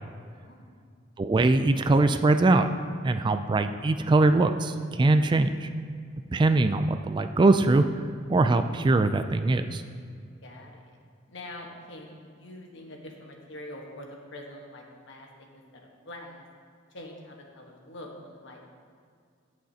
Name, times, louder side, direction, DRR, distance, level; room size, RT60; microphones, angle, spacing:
voice 1, 0.3-0.7 10.4-11.0 11.3-16.4 16.9-18.7, left 1 dB, 65° left, 1 dB, 1.3 m, -45 dB
voice 2, 1.2-2.7 3.0-5.7 6.3-7.8 8.3-9.8, right 2 dB, 25° right, 9 dB, 0.3 m, -22 dB
17.0 x 6.4 x 2.8 m, 2.2 s
head